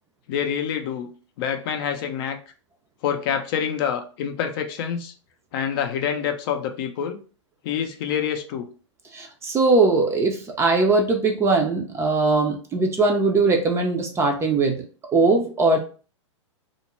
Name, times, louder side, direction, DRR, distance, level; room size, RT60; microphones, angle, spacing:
voice 1, 0.3-1.1 1.4-2.4 3.0-5.1 5.5-7.2 7.6-8.7, left 8 dB, 50° left, 6 dB, 0.5 m, -26 dB
voice 2, 9.1-14.8 15.1-15.8, right 3 dB, 15° right, 2 dB, 0.5 m, -20 dB
2.4 x 2.0 x 3.0 m, 0.37 s
hypercardioid pair, 120°, 16 cm